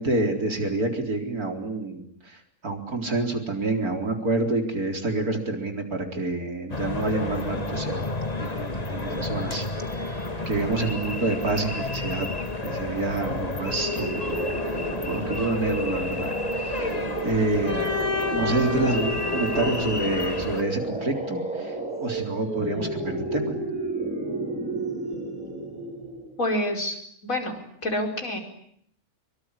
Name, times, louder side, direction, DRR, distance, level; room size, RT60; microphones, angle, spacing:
voice 1, 0.0-8.0 8.4-9.6 9.9-12.3 12.6-14.6 15.0-16.9 17.2-17.9 18.3-21.7 22.0-23.5, right 2 dB, 85° right, 4 dB, 4.6 m, -28 dB
sound 1, 6.7-20.6, left 2 dB, 25° left, 1.9 m, -30 dB
sound 2, 13.6-26.4, right 1 dB, 5° right, 7.7 m, -31 dB
voice 2, 26.4-27.0 27.2-28.4, left 1 dB, 65° left, 3 dB, 5.4 m, -27 dB
24.5 x 24.0 x 9.9 m, 0.69 s
omnidirectional pair, 1.5 m